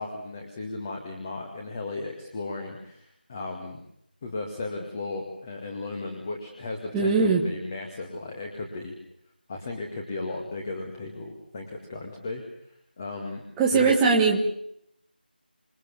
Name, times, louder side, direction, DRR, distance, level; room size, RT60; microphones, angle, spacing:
voice 1, 0.0-3.8 4.2-8.9 9.5-12.4 13.0-13.4 13.7-14.0, left 3 dB, 20° left, 3 dB, 2.1 m, -35 dB
voice 2, 6.9-7.4 13.6-14.4, right 4 dB, 5° right, -3 dB, 1.1 m, -20 dB
27.0 x 20.0 x 7.0 m, 0.72 s
figure-of-eight pair, 175°, 6 cm